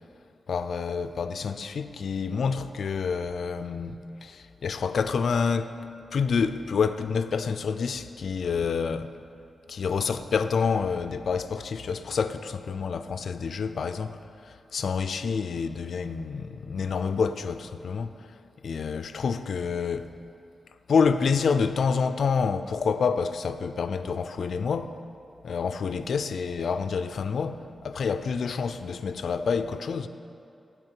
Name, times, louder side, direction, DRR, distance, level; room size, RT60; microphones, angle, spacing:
voice 1, 0.5-5.8 6.1-9.1 9.7-18.3 18.6-20.1 20.9-24.9 25.4-30.1, left 5 dB, 65° left, 0.4 m, -28 dB
9.4 x 5.0 x 7.4 m
wide cardioid pair, 150°, 0 cm